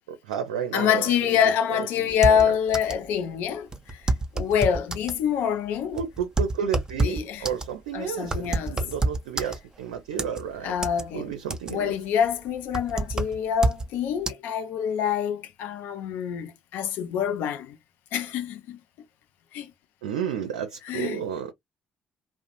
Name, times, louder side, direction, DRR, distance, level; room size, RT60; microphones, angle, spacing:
voice 1, 0.1-2.5 5.9-10.7 11.1-11.9 20.0-21.5, right 8 dB, 75° right, 0.4 m, -32 dB
voice 2, 0.7-6.0 7.0-7.5 7.9-8.8 10.6-11.3 11.7-17.8 18.1-18.8 19.5-19.7 20.9-21.2, left 8 dB, 60° left, 0.5 m, -26 dB
sound 1, 2.1-3.1 3.3-3.4 3.7-5.2 5.7-9.8 10.2-11.0 11.3-11.9 12.3-13.9 14.3-14.4, right 2 dB, 20° right, 0.7 m, -28 dB
2.4 x 2.0 x 2.9 m
figure-of-eight pair, 45°, 4 cm